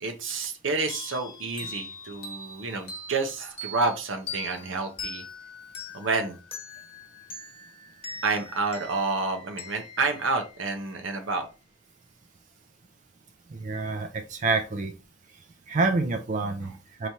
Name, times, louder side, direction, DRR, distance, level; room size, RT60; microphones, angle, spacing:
voice 1, 0.0-5.2 5.9-6.4 8.2-11.5, right 3 dB, 70° right, 0.7 m, -29 dB
sound 1, 0.9-11.2, left 3 dB, 30° left, 1.2 m, -42 dB
voice 2, 13.5-14.9 15.7-17.1, right 3 dB, 35° right, 0.4 m, -27 dB
4.7 x 3.1 x 2.7 m
head